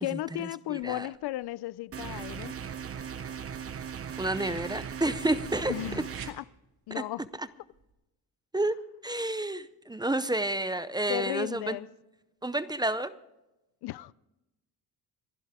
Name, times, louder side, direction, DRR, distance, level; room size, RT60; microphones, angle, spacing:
voice 1, 0.0-2.5 5.7-6.4 6.9-7.2 11.1-11.9 13.8-14.1, left 16 dB, 70° left, 0.5 m, -35 dB
voice 2, 0.7-1.1 4.2-6.0 6.9-7.0 7.4-7.5 8.5-8.8 9.0-11.8 12.4-13.1, right 1 dB, 10° right, 0.6 m, -30 dB
sound 1, 0.8-1.5 2.0-2.7 3.8-5.2 6.0-6.4 7.7-7.9, right 8 dB, 60° right, 1.9 m, -48 dB
sound 2, 1.9-6.3, right 7 dB, 35° right, 1.0 m, -38 dB
27.5 x 11.5 x 3.6 m
cardioid pair, 130°, 41 cm